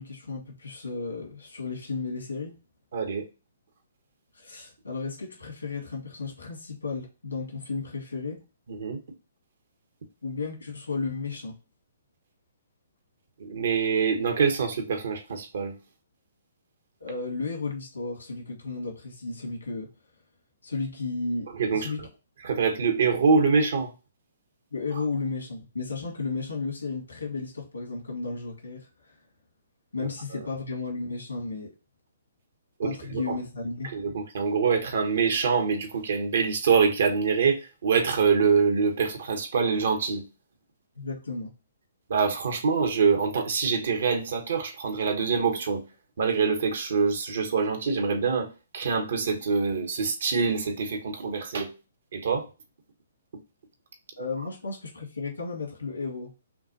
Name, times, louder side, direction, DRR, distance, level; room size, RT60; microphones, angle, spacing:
voice 1, 0.0-2.5 4.3-8.4 10.2-11.5 17.0-19.9 20.6-22.0 24.7-29.2 29.9-31.7 32.8-33.9 41.0-41.5 54.2-56.3, left 3 dB, 80° left, 1.9 m, -34 dB
voice 2, 2.9-3.2 8.7-9.0 13.4-15.8 21.6-21.9 22.4-23.9 30.0-30.1 32.8-33.4 33.8-40.3 42.1-45.8 46.2-51.7 52.1-52.5, right 5 dB, 60° right, 1.1 m, -25 dB
5.8 x 2.5 x 2.8 m
figure-of-eight pair, 130°, 0 cm